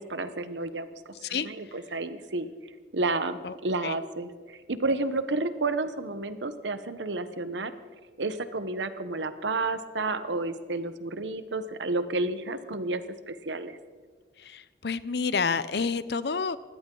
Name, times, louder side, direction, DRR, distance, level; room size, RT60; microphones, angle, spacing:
voice 1, 0.0-2.5 2.9-7.7 8.2-13.0 13.3-13.8, right 2 dB, 85° right, 11 dB, 1.0 m, -31 dB
voice 2, 14.5-16.6, left 5 dB, 65° left, 16 dB, 0.6 m, -29 dB
22.0 x 16.5 x 3.9 m, 1.5 s
head